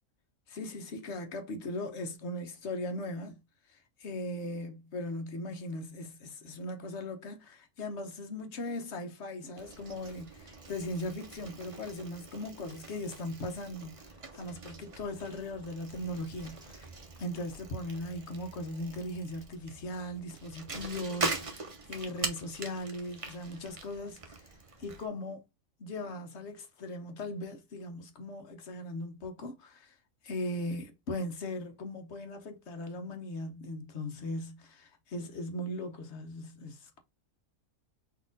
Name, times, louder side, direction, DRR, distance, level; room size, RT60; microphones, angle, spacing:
voice 1, 0.5-3.4 4.0-14.0 14.3-16.9 17.2-24.4 24.8-25.4 25.8-29.9 30.2-37.0, left 1 dB, 55° left, 1.2 m, -39 dB
Bicycle, 9.6-25.1, right 3 dB, 30° right, 0.7 m, -42 dB
4.1 x 3.0 x 3.7 m
omnidirectional pair, 1.5 m